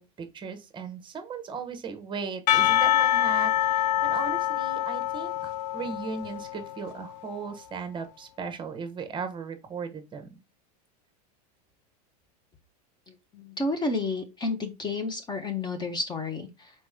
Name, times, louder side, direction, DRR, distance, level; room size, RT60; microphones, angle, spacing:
voice 1, 0.0-10.4, right 5 dB, 25° right, 0.9 m, -37 dB
Percussion / Church bell, 2.5-7.0, left 12 dB, 80° left, 0.4 m, -25 dB
voice 2, 13.1-16.7, left 3 dB, 20° left, 0.8 m, -31 dB
4.3 x 3.0 x 3.5 m
supercardioid pair, 120°, 21 cm